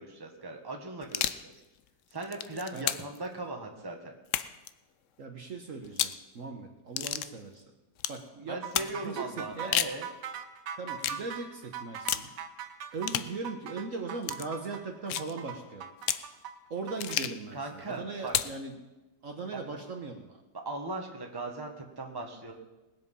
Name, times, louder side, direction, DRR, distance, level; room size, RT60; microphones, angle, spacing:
voice 1, 0.0-1.5 2.1-4.1 8.4-10.1 17.5-18.3 19.5-19.6 20.6-22.5, right 2 dB, 15° right, 2 dB, 1.4 m, -38 dB
sound 1, 1.0-1.5 2.1-3.2 4.3-4.7 5.8-6.2 7.0-7.3 8.0-8.2 8.7-8.9 9.5-10.0 11.0-11.2 12.1-12.3 13.0-13.3 14.2-14.5 15.1-15.3 16.0-16.3 17.0-17.4 18.3-18.6, left 11 dB, 65° left, 0.8 m, -31 dB
voice 2, 5.2-7.6 8.1-9.8 10.8-12.3 12.9-15.9 16.7-18.7 19.2-20.4, right 4 dB, 55° right, 3 dB, 1.4 m, -39 dB
sound 2, 8.6-17.2, right 8 dB, 80° right, 1.5 m, -41 dB
20.0 x 7.8 x 5.5 m, 1.1 s
omnidirectional pair, 1.8 m